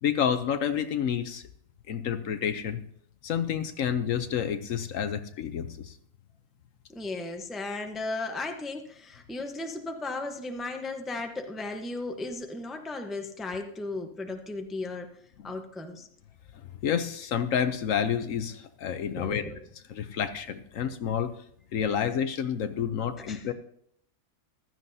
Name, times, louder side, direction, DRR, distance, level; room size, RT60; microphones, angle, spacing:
voice 1, 0.0-1.4 1.9-2.8 3.2-6.0 15.4-15.5 16.8-19.4 19.9-21.3 21.7-23.5, left 8 dB, 65° left, 10 dB, 1.0 m, -29 dB
voice 2, 6.9-15.1 15.4-16.1 19.2-19.5 23.3-23.4, left 2 dB, ahead, 4 dB, 0.7 m, -35 dB
15.0 x 12.5 x 2.7 m, 0.68 s
omnidirectional pair, 1.6 m